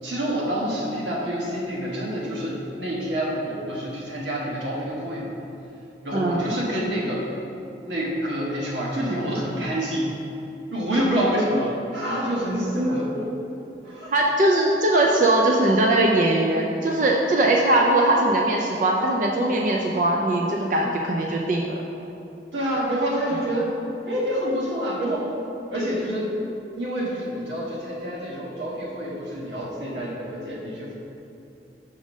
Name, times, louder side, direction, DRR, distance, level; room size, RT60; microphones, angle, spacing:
voice 1, 0.0-5.3 6.0-7.2 7.8-10.1 10.7-13.3 13.8-14.1 22.5-23.7 24.1-25.3 25.7-26.4 26.7-30.9, equal, 90° right, -5 dB, 1.5 m, -27 dB
voice 2, 6.1-6.4 12.8-12.9 14.1-21.8, right 1 dB, 45° right, -1 dB, 0.4 m, -20 dB
6.2 x 3.7 x 6.2 m, 2.8 s
head